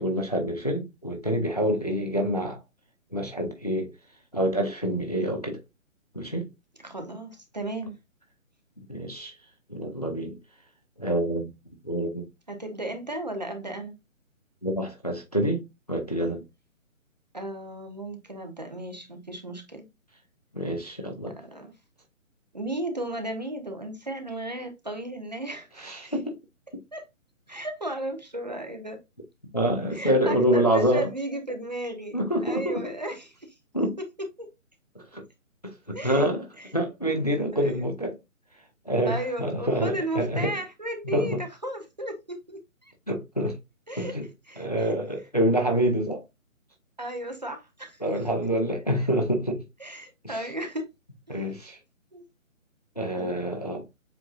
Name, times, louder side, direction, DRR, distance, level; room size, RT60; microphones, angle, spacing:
voice 1, 0.0-2.6 3.1-3.9 4.3-5.6 6.1-6.5 8.9-9.3 9.7-10.4 11.0-11.5 11.8-12.2 14.6-16.4 20.5-21.3 25.8-26.3 29.5-31.1 32.1-32.8 33.7-34.0 35.0-35.2 35.6-36.5 36.7-38.2 38.9-40.6 41.0-41.4 43.1-43.5 44.0-44.2 44.6-46.2 48.0-49.6 50.2-50.4 51.3-51.8 53.0-53.8, equal, 30° left, 0.5 m, -26 dB
voice 2, 6.8-8.0 12.5-13.9 17.3-19.9 21.4-21.7 22.5-26.1 26.9-27.0 27.5-29.0 29.9-33.5 34.4-34.5 35.9-36.3 36.6-36.7 37.5-37.8 39.1-42.9 43.9-44.1 44.5-45.0 47.0-48.2 49.0-49.1 49.8-50.9 52.1-52.2 53.2-53.3, right 1 dB, 35° right, 0.7 m, -35 dB
7.5 x 2.6 x 2.2 m
hypercardioid pair, 175°, 40 cm